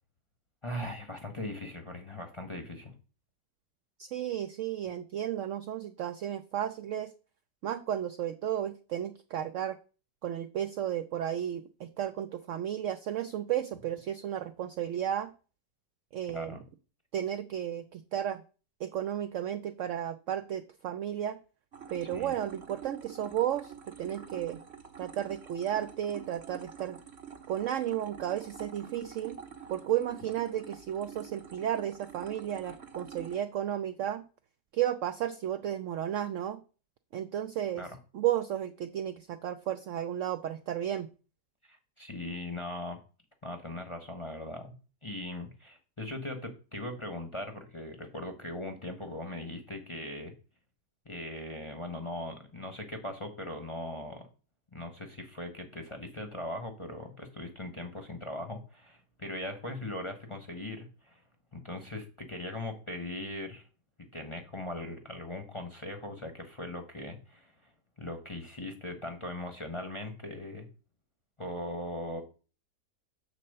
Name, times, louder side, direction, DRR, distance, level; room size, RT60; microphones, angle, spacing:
voice 1, 0.6-2.9 16.3-16.6 22.1-22.4 37.7-38.0 41.7-43.0 43.4-44.7 45.0-50.3 51.0-54.3 54.7-61.2 61.5-63.6 64.0-67.5 68.0-70.7 71.4-72.2, left 1 dB, 25° left, 4 dB, 0.8 m, -39 dB
voice 2, 4.0-7.1 7.6-9.8 10.2-15.3 16.1-16.6 17.1-18.4 18.8-21.4 21.9-23.7 24.0-24.6 25.0-27.0 27.5-29.4 29.7-34.2 34.7-36.6 37.1-37.9 38.1-41.1, right 11 dB, 75° right, 11 dB, 0.7 m, -33 dB
sound 1, 21.7-33.4, right 7 dB, 45° right, 1.2 m, -47 dB
7.5 x 4.2 x 6.5 m, 0.36 s
omnidirectional pair, 1.8 m